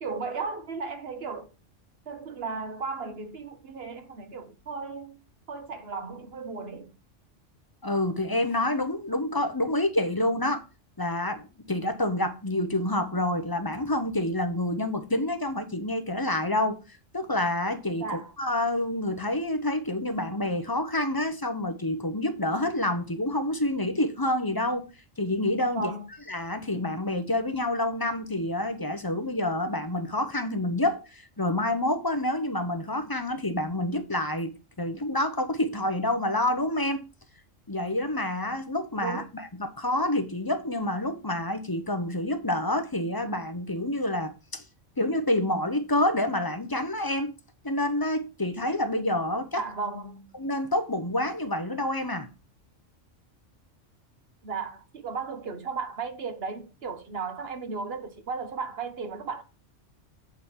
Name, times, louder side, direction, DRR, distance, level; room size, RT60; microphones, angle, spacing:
voice 1, 0.0-1.5 2.1-5.2 5.5-6.9 18.0-18.3 25.7-26.1 39.0-39.2 49.5-50.3 54.4-59.4, right 4 dB, 55° right, 1.4 m, -35 dB
voice 2, 7.8-10.6 11.0-24.9 25.2-25.9 26.3-37.0 37.7-44.6 45.0-47.3 47.6-49.6 50.4-52.3, left 1 dB, 20° left, 0.8 m, -28 dB
8.3 x 4.1 x 5.7 m
omnidirectional pair, 1.3 m